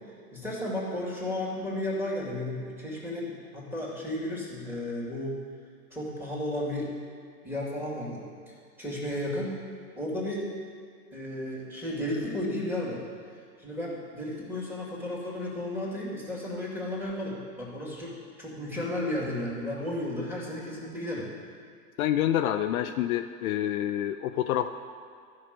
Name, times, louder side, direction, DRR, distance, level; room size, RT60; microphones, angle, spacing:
voice 1, 0.3-5.4 5.9-6.9 7.4-8.2 8.8-9.6 10.0-10.5 11.1-13.0 13.6-18.1 18.4-21.3, left 1 dB, 5° right, -5 dB, 2.4 m, -33 dB
voice 2, 22.0-24.7, left 11 dB, 60° left, 8 dB, 0.5 m, -27 dB
12.5 x 5.6 x 5.2 m, 2.1 s
hypercardioid pair, 115°, 47 cm